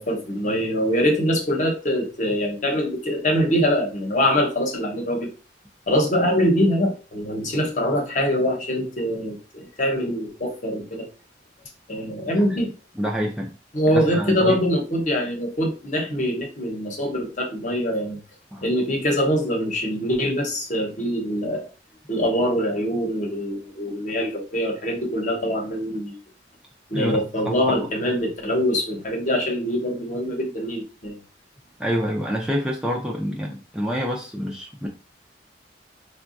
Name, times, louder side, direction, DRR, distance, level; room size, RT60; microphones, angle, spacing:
voice 1, 0.0-5.3 5.9-11.1 11.9-12.7 13.7-18.2 18.6-21.7 22.1-26.2 26.9-31.2, equal, 45° left, 1 dB, 0.9 m, -23 dB
voice 2, 13.0-13.5 13.9-14.6 18.5-18.6 26.9-27.2 27.4-27.9 31.8-34.9, equal, 5° right, -1 dB, 0.4 m, -27 dB
4.7 x 2.3 x 2.5 m, 0.34 s
head